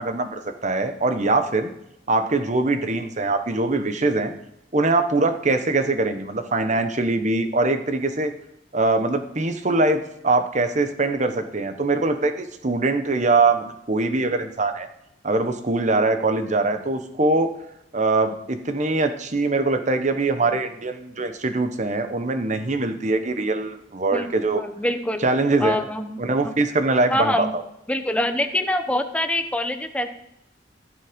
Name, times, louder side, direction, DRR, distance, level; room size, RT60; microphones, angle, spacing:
voice 1, 0.0-1.7 2.1-4.3 4.7-8.3 8.7-14.9 15.2-17.5 17.9-24.6 25.2-25.8 26.2-27.6, right 2 dB, 40° right, 8 dB, 1.0 m, -22 dB
voice 2, 24.5-25.2 25.6-26.2 27.1-27.5 27.9-30.2, left 1 dB, 5° left, 7 dB, 0.8 m, -25 dB
15.0 x 7.4 x 5.2 m, 0.81 s
head